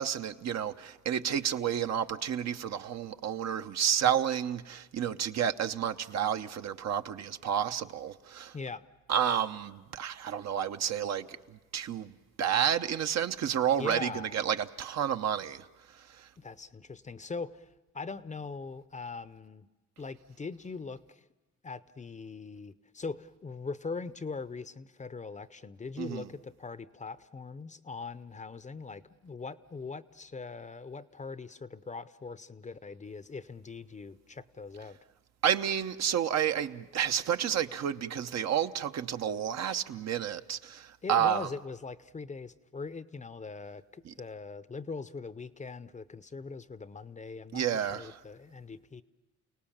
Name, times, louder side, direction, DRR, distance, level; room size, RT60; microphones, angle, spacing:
voice 1, 0.0-8.5 9.1-12.1 12.4-15.7 15.9-16.3 26.0-26.3 35.4-41.5 44.0-44.1 47.5-48.2, right 9 dB, 60° right, 0.9 m, -30 dB
voice 2, 8.5-8.8 13.8-14.4 16.4-17.7 17.9-19.7 20.0-21.3 21.6-35.0 41.0-49.0, left 4 dB, 25° left, 0.7 m, -41 dB
29.5 x 18.0 x 7.3 m
cardioid pair, 90°, 30 cm